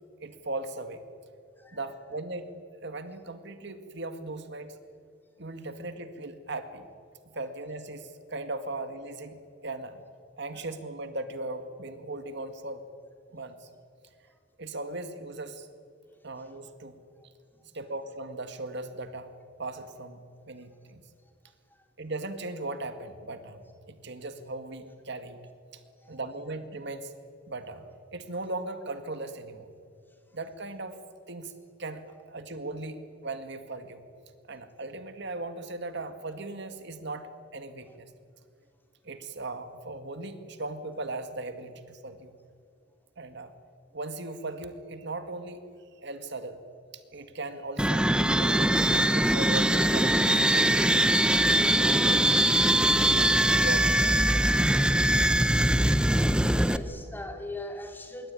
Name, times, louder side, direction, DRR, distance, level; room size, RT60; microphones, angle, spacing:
voice 1, 0.2-1.0 1.7-2.5 2.8-4.8 5.4-6.9 7.3-10.0 10.4-12.8 13.3-13.7 14.6-15.7 16.2-17.0 17.2-17.3 17.7-19.3 19.6-21.0 22.0-25.4 25.7-25.8 26.1-27.1 27.5-27.9 28.1-29.7 30.3-31.0 31.3-31.5 31.8-34.0 34.5-38.1 39.0-42.3 43.2-43.5 43.9-45.6 46.0-46.6 46.9-48.1 48.4-50.9 51.6-52.2 53.0-54.0 54.3-54.7, right 2 dB, 65° right, 9 dB, 2.1 m, -38 dB
voice 2, 25.8-26.2 47.1-47.2 56.3-58.3, left 1 dB, 10° left, 4 dB, 3.5 m, -42 dB
sound 1, 47.8-56.8, right 1 dB, 5° right, 0.8 m, -22 dB
26.5 x 23.0 x 9.7 m, 2.3 s
head